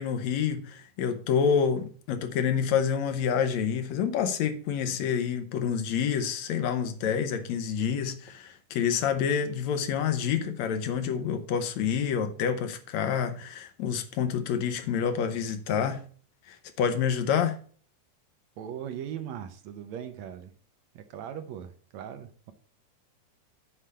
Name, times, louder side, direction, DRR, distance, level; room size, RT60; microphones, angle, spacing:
voice 1, 0.0-16.0 16.5-17.6, left 7 dB, 75° left, 2.1 m, -28 dB
voice 2, 18.6-20.5 21.0-22.5, right 9 dB, 75° right, 2.0 m, -39 dB
7.6 x 4.9 x 6.6 m
omnidirectional pair, 3.4 m